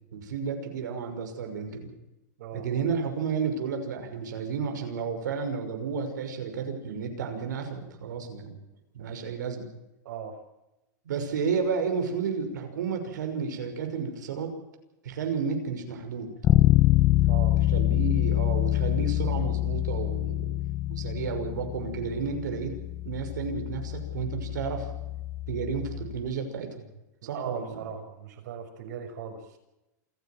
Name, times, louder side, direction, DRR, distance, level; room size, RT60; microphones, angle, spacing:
voice 1, 0.1-1.9 2.5-8.6 8.9-9.6 11.0-14.5 15.0-16.3 17.6-22.7 23.0-24.9 25.5-26.9 27.2-27.9, right 5 dB, 90° right, 5 dB, 6.1 m, -32 dB
Bass guitar, 16.4-26.2, left 15 dB, 25° left, 1.1 m, -26 dB
voice 2, 17.3-17.6 27.2-29.4, right 7 dB, 70° right, 6 dB, 6.2 m, -38 dB
27.5 x 11.5 x 9.0 m, 0.93 s
supercardioid pair, 145°, 10 cm